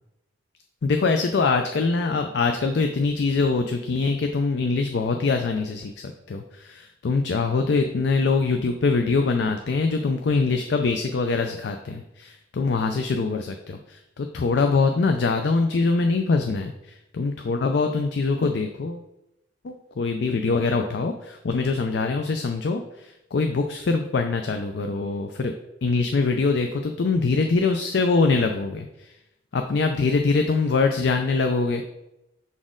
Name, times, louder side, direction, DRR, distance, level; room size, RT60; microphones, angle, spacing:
voice 1, 0.8-5.9 6.3-19.0 19.6-25.5 25.8-29.1 29.5-31.8, left 4 dB, 65° left, 5 dB, 0.4 m, -23 dB
6.0 x 4.2 x 3.7 m, 0.88 s
head